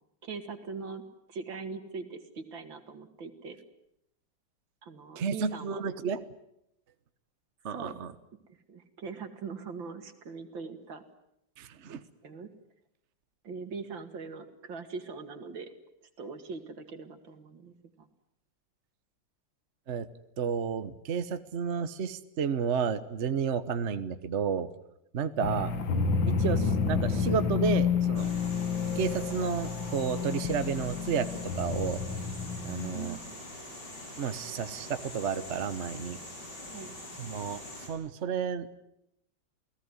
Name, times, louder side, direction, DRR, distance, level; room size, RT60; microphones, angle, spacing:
voice 1, 0.2-1.0 1.3-3.6 4.8-5.8 7.7-8.0 8.5-11.0 12.2-12.5 13.4-15.7 16.2-18.1 32.9-33.3 36.7-36.9, right 5 dB, 80° right, 8 dB, 2.9 m, -41 dB
voice 2, 5.2-6.2 7.6-8.1 11.6-12.0 19.9-20.1 20.4-24.7 25.1-25.7 26.4-28.3 28.9-31.3 31.6-32.0 32.6-33.2 34.2-36.2 37.2-37.6 37.9-38.7, right 6 dB, 40° right, 11 dB, 1.3 m, -31 dB
sound 1, 25.4-33.1, left 5 dB, 80° left, 2.4 m, -30 dB
sound 2, 28.2-37.9, left 1 dB, 60° left, 6.7 m, -44 dB
29.5 x 18.0 x 9.8 m, 0.81 s
omnidirectional pair, 2.1 m